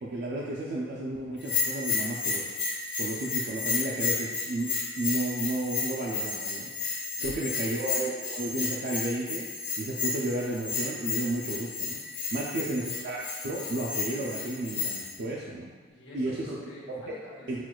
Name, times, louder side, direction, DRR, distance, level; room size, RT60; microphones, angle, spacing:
voice 1, 0.0-2.5 3.0-6.7 7.2-9.5 9.8-12.0 12.3-15.7 16.1-16.4 17.5-17.6, right 2 dB, 60° right, -4 dB, 0.4 m, -32 dB
Bell, 1.4-15.2, left 5 dB, 65° left, 0.7 m, -32 dB
voice 2, 7.1-7.8 12.3-12.8 15.9-17.5, left 1 dB, 85° left, -6 dB, 1.0 m, -48 dB
6.0 x 2.2 x 2.3 m, 1.4 s
head